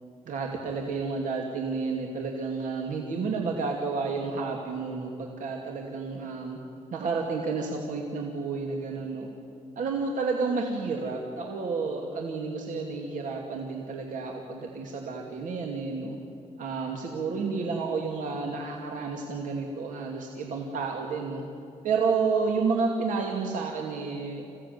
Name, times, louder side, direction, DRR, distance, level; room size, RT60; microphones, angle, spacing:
voice 1, 0.3-6.6 6.9-9.3 9.8-16.2 16.6-21.4 21.8-24.4, right 4 dB, 90° right, 1 dB, 2.5 m, -30 dB
27.0 x 17.0 x 9.5 m, 2.6 s
cardioid pair, 125°, 13 cm